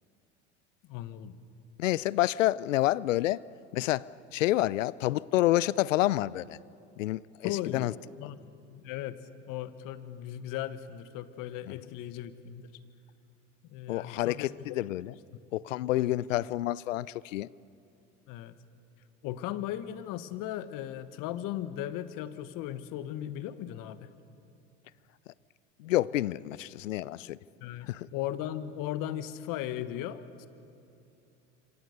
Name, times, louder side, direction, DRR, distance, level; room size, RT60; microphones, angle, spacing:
voice 1, 0.9-1.4 7.4-7.9 8.2-8.4 8.7-9.2 9.5-12.7 13.7-14.5 16.0-16.1 18.3-18.6 19.2-24.1 27.6-30.5, left 12 dB, 60° left, 1.4 m, -37 dB
voice 2, 1.8-3.4 3.7-6.6 7.0-7.9 11.7-11.8 13.9-15.1 15.5-17.5 25.8-27.4 27.9-28.1, left 15 dB, 90° left, 0.6 m, -28 dB
28.0 x 25.5 x 6.7 m
hypercardioid pair, 80°, 37 cm